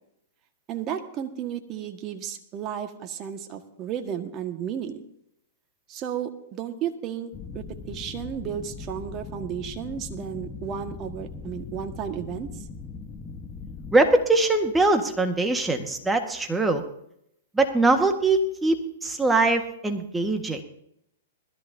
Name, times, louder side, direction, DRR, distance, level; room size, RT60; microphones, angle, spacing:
voice 1, 0.7-5.0 5.9-12.5, right 9 dB, 35° right, 5 dB, 1.6 m, -33 dB
sound 1, 7.3-14.0, left 4 dB, 20° left, 1.2 m, -39 dB
voice 2, 13.9-16.8 17.5-20.6, right 2 dB, 10° right, 5 dB, 1.6 m, -22 dB
20.5 x 13.5 x 2.8 m, 0.74 s
hypercardioid pair, 120°, 0 cm